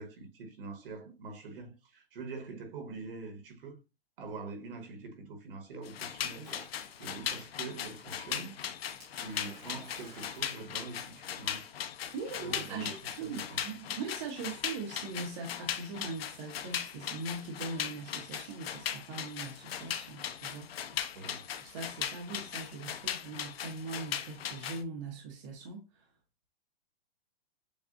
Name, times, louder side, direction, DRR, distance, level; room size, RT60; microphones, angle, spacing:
voice 1, 0.0-3.8 4.2-8.6 9.1-11.7 12.4-13.6 21.1-21.5, right 3 dB, 60° right, 1.5 m, -44 dB
sound 1, 5.8-24.8, left 9 dB, 70° left, 0.7 m, -39 dB
Splash splatter, 6.4-7.3 9.0-11.4, equal, 5° right, 0.3 m, -54 dB
voice 2, 12.1-20.9 21.6-26.1, right 4 dB, 30° right, 0.9 m, -41 dB
7.1 x 2.4 x 2.5 m
hypercardioid pair, 175°, 31 cm